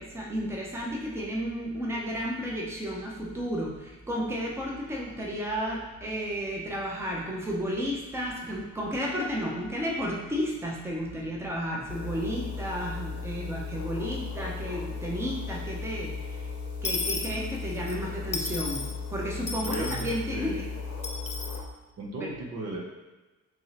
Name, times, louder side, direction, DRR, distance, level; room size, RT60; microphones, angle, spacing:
voice 1, 0.0-16.5 16.8-20.8 22.2-22.3, equal, 10° right, -3 dB, 0.7 m, -32 dB
sound 1, 11.9-21.6, left 5 dB, 70° left, 0.7 m, -36 dB
Dishes pots and pans / Coin (dropping), 16.8-18.0 18.3-18.9 19.5-20.2 21.0-21.6, left 4 dB, 25° left, 0.4 m, -33 dB
voice 2, 19.6-20.6 22.0-22.8, right 2 dB, 55° right, -1 dB, 0.8 m, -35 dB
3.2 x 2.8 x 4.0 m, 1.1 s
cardioid pair, 90°, 30 cm